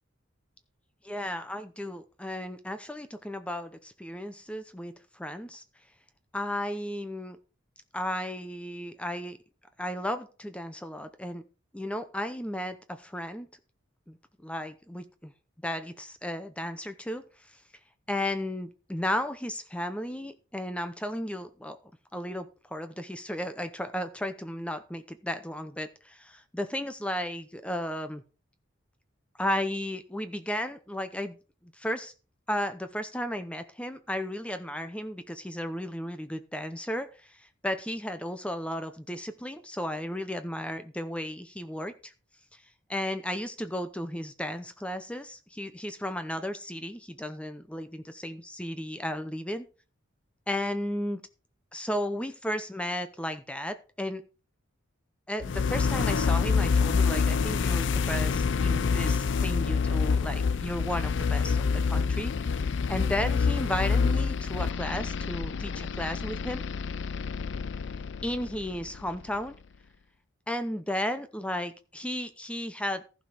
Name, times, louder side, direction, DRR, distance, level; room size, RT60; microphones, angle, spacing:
voice 1, 1.0-5.6 6.3-7.4 7.9-9.4 9.8-11.4 11.7-13.5 14.1-14.2 14.4-15.3 15.6-17.6 18.1-21.8 22.1-28.2 29.4-31.4 31.7-32.1 32.5-42.1 42.5-42.6 42.9-49.7 50.5-51.2 51.7-54.2 55.3-66.6 68.2-69.6 70.5-73.0, left 1 dB, 5° left, 9 dB, 0.6 m, -34 dB
sound 1, 55.4-69.3, left 5 dB, 60° left, 0.4 m, -27 dB
15.0 x 5.0 x 5.8 m, 0.36 s
head